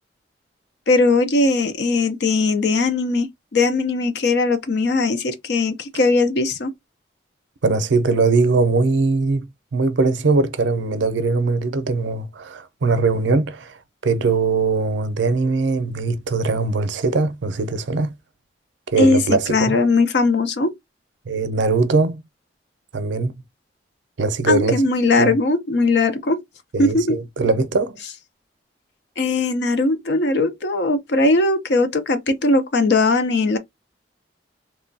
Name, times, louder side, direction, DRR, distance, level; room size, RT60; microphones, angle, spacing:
voice 1, 0.9-6.7 19.0-20.7 24.5-26.4 26.8-27.2 29.2-33.6, left 3 dB, 65° left, 0.5 m, -19 dB
voice 2, 7.6-9.5 9.7-13.8 14.0-18.1 18.9-19.7 21.3-22.2 22.9-23.3 24.2-24.8 25.2-25.4 26.7-28.0, right 3 dB, 80° right, 0.5 m, -20 dB
3.0 x 2.2 x 2.5 m
head